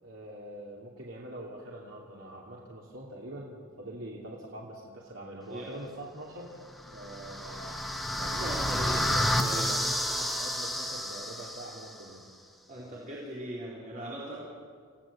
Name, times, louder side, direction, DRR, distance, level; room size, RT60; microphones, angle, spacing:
voice 1, 0.0-6.6 6.9-8.5 8.8-12.3, right 1 dB, 75° right, -4 dB, 3.0 m, -44 dB
sound 1, 6.8-11.9, left 1 dB, ahead, 1.6 m, -30 dB
voice 2, 8.2-9.0 9.4-9.7 12.7-14.4, right 1 dB, 40° right, -7 dB, 4.1 m, -39 dB
29.5 x 16.5 x 7.4 m, 2.1 s
head